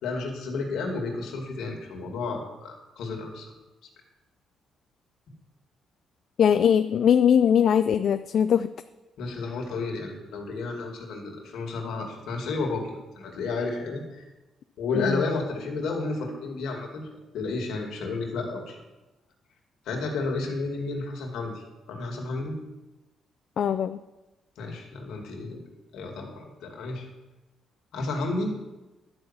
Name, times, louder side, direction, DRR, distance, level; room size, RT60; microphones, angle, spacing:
voice 1, 0.0-3.5 9.2-14.2 14.8-17.1 17.3-18.8 19.9-22.6 24.6-25.6 25.9-27.1 27.9-28.5, left 3 dB, 80° left, 1 dB, 2.2 m, -32 dB
voice 2, 6.4-8.7 15.0-15.2 23.6-24.0, left 8 dB, 60° left, 11 dB, 0.4 m, -21 dB
11.0 x 5.6 x 7.3 m, 1.1 s
cardioid pair, 90°, 0 cm